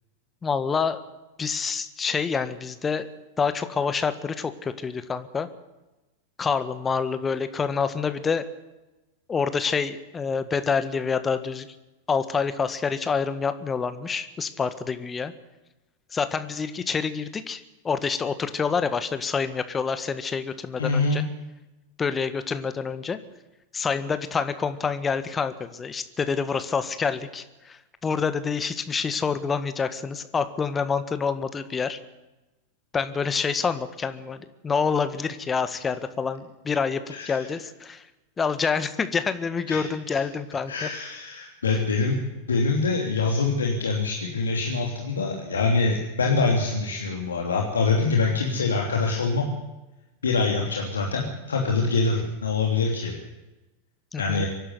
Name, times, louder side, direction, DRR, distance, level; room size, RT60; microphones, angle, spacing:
voice 1, 0.4-1.0 1.4-3.1 3.4-5.5 6.4-8.4 9.3-11.7 12.1-15.3 16.1-21.2 22.0-23.2 23.7-32.0 32.9-38.0 38.4-40.9 54.1-54.5, left 5 dB, 20° left, 11 dB, 1.6 m, -27 dB
voice 2, 20.8-21.2 37.2-37.4 39.7-40.2 40.7-42.2 42.5-49.5 50.2-53.1 54.2-54.5, left 3 dB, 80° left, 0 dB, 3.0 m, -24 dB
25.0 x 11.5 x 9.7 m, 1.0 s
figure-of-eight pair, 90°, 0 cm